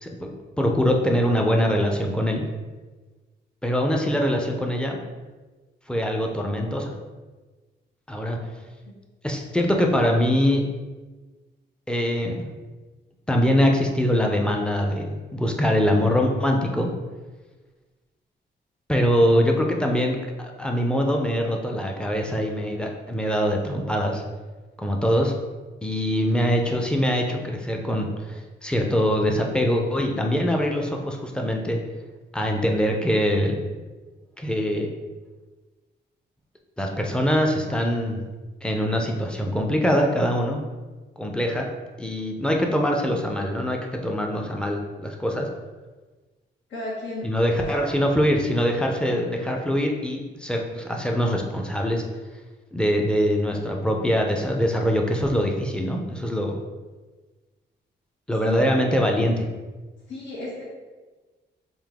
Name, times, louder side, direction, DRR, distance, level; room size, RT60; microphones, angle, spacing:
voice 1, 0.0-2.4 3.6-5.0 5.9-6.9 8.1-8.4 9.2-10.6 11.9-12.4 13.3-16.9 18.9-24.2 24.8-25.3 25.8-31.8 32.3-33.6 34.4-34.9 36.8-38.2 38.6-40.6 41.2-41.7 42.0-45.5 47.2-52.0 52.7-56.6 58.3-59.5, equal, 5° left, 1 dB, 0.5 m, -23 dB
voice 2, 46.7-47.9 58.4-58.7 60.1-60.6, left 2 dB, 80° left, -5 dB, 1.4 m, -34 dB
3.9 x 2.6 x 3.5 m, 1.3 s
cardioid pair, 120°, 19 cm